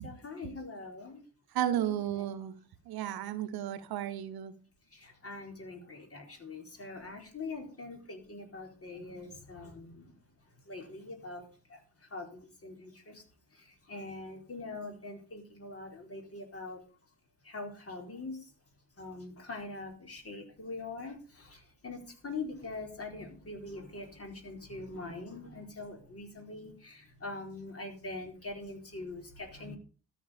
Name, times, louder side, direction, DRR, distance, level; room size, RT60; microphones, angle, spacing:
voice 1, 0.0-1.2 1.7-2.4 4.9-10.2 10.7-13.2 13.5-16.8 17.4-18.5 19.0-29.8, left 3 dB, 30° left, 2 dB, 4.4 m, -43 dB
voice 2, 1.5-2.5 2.9-4.5, right 11 dB, 55° right, 11 dB, 1.2 m, -33 dB
13.0 x 9.1 x 5.2 m, 0.38 s
figure-of-eight pair, 45°, 43 cm